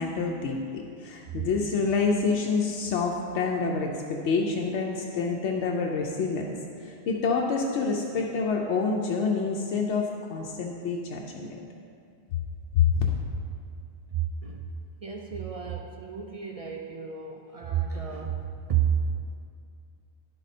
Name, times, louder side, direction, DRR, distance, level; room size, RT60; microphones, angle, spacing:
voice 1, 0.0-6.5 6.8-11.5 12.7-12.9, left 5 dB, 85° left, 0 dB, 0.9 m, -27 dB
voice 2, 14.1-14.7 15.0-19.1, right 9 dB, 60° right, 2 dB, 0.3 m, -31 dB
11.0 x 4.1 x 4.2 m, 2.4 s
omnidirectional pair, 1.1 m